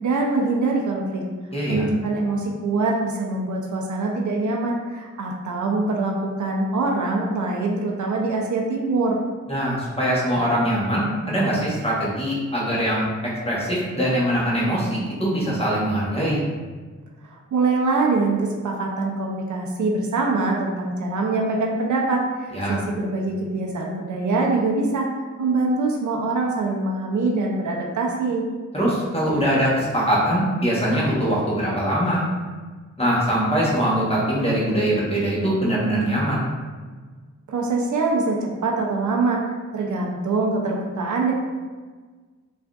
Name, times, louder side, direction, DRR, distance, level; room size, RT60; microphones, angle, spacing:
voice 1, 0.0-1.2 1.7-9.2 17.2-25.1 25.4-28.4 37.5-39.4 39.7-41.3, right 3 dB, 80° right, -1 dB, 0.5 m, -24 dB
voice 2, 1.5-1.8 9.5-13.1 13.4-16.4 22.5-22.7 28.7-32.2 33.0-36.5, equal, 20° left, -6 dB, 1.0 m, -22 dB
3.5 x 2.4 x 2.3 m, 1.4 s
wide cardioid pair, 80°, 30 cm